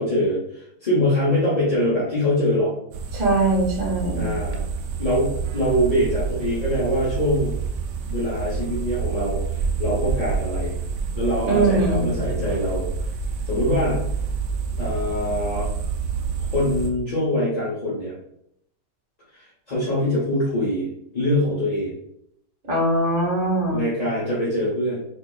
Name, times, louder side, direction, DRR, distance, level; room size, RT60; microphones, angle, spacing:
voice 1, 0.0-2.7 4.1-4.6 5.0-7.5 8.1-10.8 11.1-12.9 13.4-14.0 14.8-15.7 16.5-18.1 19.3-20.9 21.1-21.9 23.7-25.0, left 1 dB, 30° left, -8 dB, 0.8 m, -23 dB
sound 1, 2.9-16.9, right 5 dB, 70° right, 0.8 m, -28 dB
voice 2, 3.1-4.3 11.5-12.1 22.6-23.8, right 2 dB, 40° right, -3 dB, 0.9 m, -21 dB
4.1 x 2.8 x 2.4 m, 0.73 s
omnidirectional pair, 1.9 m